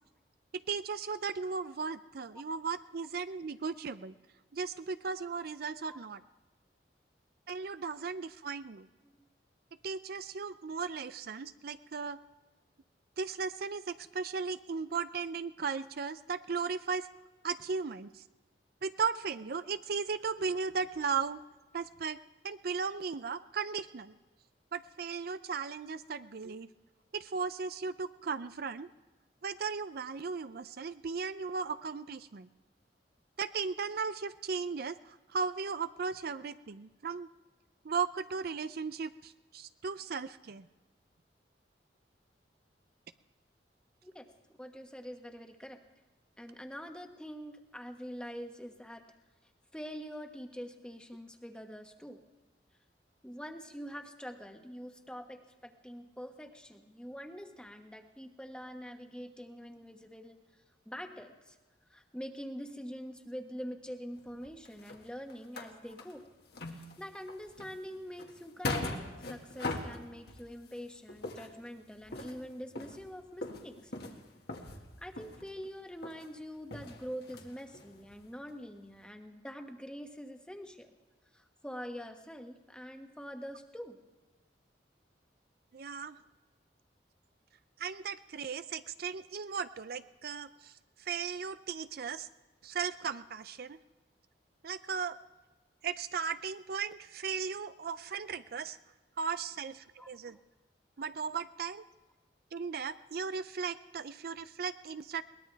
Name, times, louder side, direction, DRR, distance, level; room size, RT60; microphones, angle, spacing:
voice 1, 0.7-4.1 4.5-6.2 7.5-8.9 9.8-12.2 13.2-17.1 17.4-18.2 18.8-21.4 21.7-22.2 22.4-24.1 24.7-26.7 27.1-28.9 29.4-32.5 33.4-37.3 37.8-40.6 85.7-86.2 87.8-90.7 91.0-92.3 92.6-93.8 94.6-95.2 95.8-98.8 99.2-100.4 101.0-101.8 102.5-105.2, right 5 dB, 60° right, 12 dB, 0.5 m, -36 dB
voice 2, 44.6-45.8 46.4-49.0 49.7-52.2 53.2-60.4 60.8-61.6 61.9-66.2 66.7-73.9 75.0-81.0 81.3-84.0 100.0-100.1, equal, 5° left, 4 dB, 1.3 m, -45 dB
sound 1, 64.1-66.2 66.5-70.8 71.1-75.7 76.0-76.3 76.6-78.2 78.5-78.6 78.9-79.0, left 2 dB, 65° left, 1.9 m, -41 dB
22.0 x 19.0 x 3.4 m, 1.2 s
head